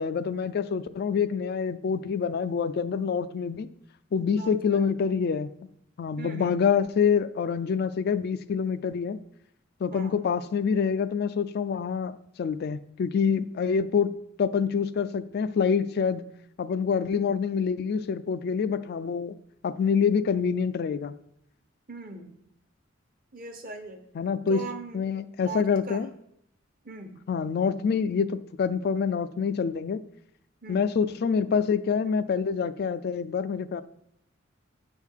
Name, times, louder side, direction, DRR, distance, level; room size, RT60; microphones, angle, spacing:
voice 1, 0.0-3.7 4.1-5.5 6.0-9.2 9.8-16.3 16.6-19.3 19.6-21.1 24.2-24.6 24.9-26.1 27.3-30.0 30.7-33.8, left 6 dB, 55° left, 12 dB, 0.3 m, -26 dB
voice 2, 4.4-4.8 6.2-6.6 9.9-10.1 21.9-22.3 23.3-24.0 24.5-25.0 25.4-26.0 26.8-27.2 30.6-30.9, right 3 dB, 45° right, 5 dB, 1.0 m, -40 dB
8.1 x 3.5 x 6.4 m, 0.74 s
head